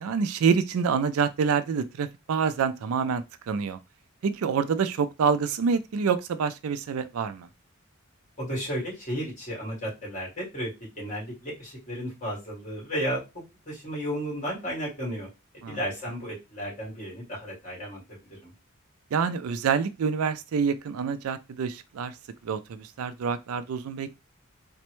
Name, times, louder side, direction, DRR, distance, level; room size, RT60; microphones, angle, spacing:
voice 1, 0.0-3.8 4.2-7.5 15.6-15.8 19.1-22.1 22.4-24.2, right 6 dB, 80° right, 0.4 m, -27 dB
voice 2, 8.4-10.7 11.0-13.2 13.7-15.3 15.7-18.5, equal, 35° left, 1.9 m, -33 dB
4.1 x 2.2 x 3.0 m
head